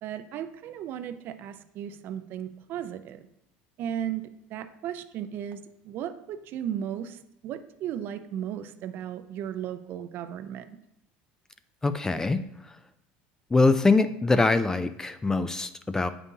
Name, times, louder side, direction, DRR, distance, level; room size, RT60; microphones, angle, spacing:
voice 1, 0.0-3.2 3.8-10.8, right 10 dB, 50° right, 11 dB, 0.4 m, -35 dB
voice 2, 11.8-12.4 13.5-16.1, left 3 dB, 15° left, 11 dB, 0.3 m, -23 dB
8.2 x 5.4 x 2.7 m, 0.80 s
supercardioid pair, 120°, 4 cm